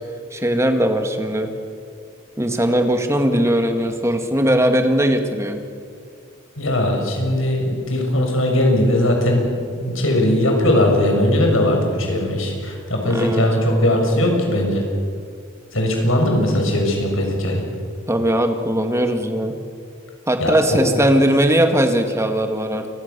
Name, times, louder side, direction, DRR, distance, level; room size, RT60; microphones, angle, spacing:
voice 1, 0.3-1.5 2.4-5.6 13.0-13.5 16.5-16.6 18.1-19.6 20.3-22.9, right 1 dB, 15° right, 6 dB, 2.1 m, -19 dB
voice 2, 6.6-9.5 9.7-14.8 15.7-17.6 20.4-20.9, left 1 dB, 75° left, 2 dB, 6.6 m, -19 dB
28.5 x 23.0 x 7.0 m, 2.3 s
head